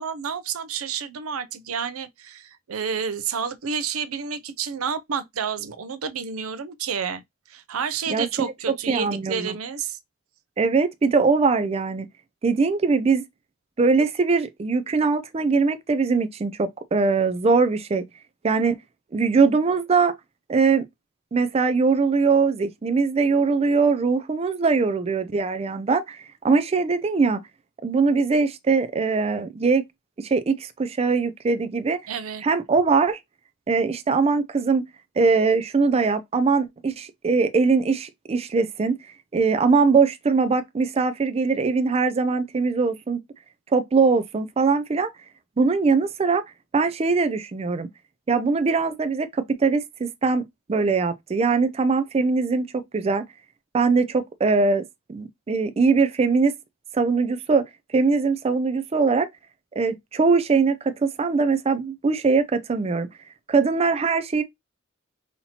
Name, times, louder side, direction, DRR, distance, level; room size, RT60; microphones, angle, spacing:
voice 1, 0.0-7.2 7.5-10.0 32.1-32.4, right 6 dB, 75° right, 0.6 m, -30 dB
voice 2, 8.1-8.5 8.9-9.6 10.6-12.1 12.4-13.2 13.8-18.0 18.4-18.8 19.1-20.2 20.5-20.8 21.3-27.4 27.8-29.8 30.2-32.0 32.4-33.2 33.7-34.9 35.2-39.0 39.3-43.2 43.7-45.1 45.6-46.4 46.7-47.9 48.3-50.4 50.7-53.3 53.7-54.8 55.1-56.5 56.9-57.7 57.9-59.3 59.8-63.1 63.5-64.4, right 4 dB, 30° right, 0.4 m, -21 dB
5.7 x 2.8 x 2.8 m
head